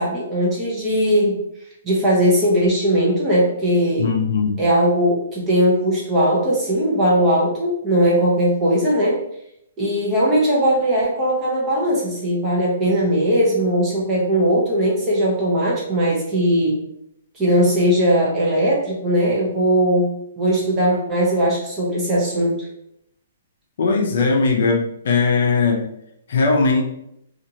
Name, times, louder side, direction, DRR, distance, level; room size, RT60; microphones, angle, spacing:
voice 1, 0.0-1.4 1.8-4.1 4.6-9.2 9.8-16.8 17.3-22.7, equal, 15° right, -5 dB, 0.7 m, -19 dB
voice 2, 4.0-4.5 23.8-25.9 26.3-26.8, left 4 dB, 55° left, 1 dB, 0.5 m, -19 dB
2.8 x 2.4 x 2.8 m, 0.78 s
hypercardioid pair, 175°, 0 cm